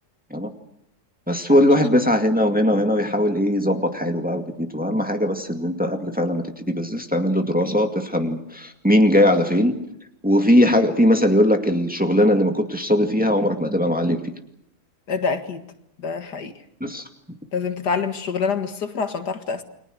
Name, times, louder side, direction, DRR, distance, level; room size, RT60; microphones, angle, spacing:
voice 1, 1.3-9.8 10.2-14.3 16.8-17.0, left 1 dB, 5° right, 4 dB, 2.0 m, -20 dB
voice 2, 15.1-15.6 16.0-16.5 17.5-19.6, left 5 dB, 75° left, 8 dB, 2.4 m, -26 dB
29.5 x 23.0 x 6.5 m, 0.76 s
omnidirectional pair, 1.8 m